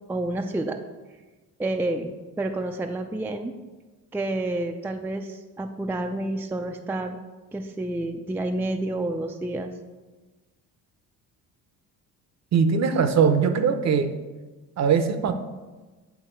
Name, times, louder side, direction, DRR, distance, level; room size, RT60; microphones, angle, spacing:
voice 1, 0.1-0.8 1.6-3.5 4.1-7.2 7.5-9.7, right 2 dB, 5° right, 4 dB, 0.4 m, -29 dB
voice 2, 12.5-14.1 14.8-15.3, right 6 dB, 45° right, 9 dB, 0.7 m, -21 dB
9.2 x 3.6 x 4.4 m, 1.2 s
cardioid pair, 90°, 36 cm